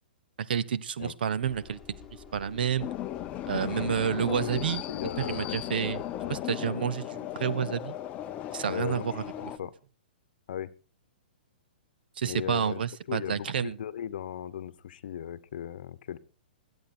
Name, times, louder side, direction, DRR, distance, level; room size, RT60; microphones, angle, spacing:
voice 1, 0.4-2.0 2.3-2.9 3.5-4.8 5.2-6.0 6.3-8.0 8.5-9.2 12.2-13.8, right 8 dB, 70° right, 15 dB, 0.9 m, -29 dB
Engine, 1.4-6.4, left 6 dB, 5° left, 3.5 m, -50 dB
sound 1, 2.8-9.6, left 12 dB, 25° left, 0.7 m, -36 dB
voice 2, 4.2-4.6 4.9-5.6 6.2-6.4 8.6-9.1 9.4-9.7 10.5-10.7 12.3-12.8 13.1-16.2, left 9 dB, 65° left, 15 dB, 1.0 m, -37 dB
21.5 x 8.6 x 4.4 m, 0.38 s
hypercardioid pair, 135°, 5 cm